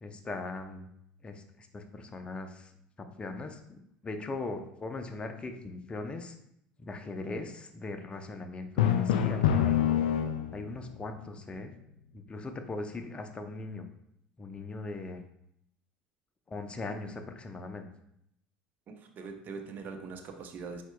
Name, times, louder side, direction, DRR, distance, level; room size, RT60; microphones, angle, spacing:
voice 1, 0.0-0.9 1.2-2.7 3.0-6.3 6.8-10.0 10.5-11.7 12.1-13.9 14.4-15.2 16.5-17.9, left 3 dB, 25° left, 6 dB, 0.6 m, -40 dB
Drum, 8.8-10.8, left 9 dB, 80° left, 0.3 m, -26 dB
voice 2, 18.9-20.8, right 4 dB, 45° right, 5 dB, 0.7 m, -42 dB
4.5 x 4.3 x 2.3 m, 0.74 s
hypercardioid pair, 75°, 4 cm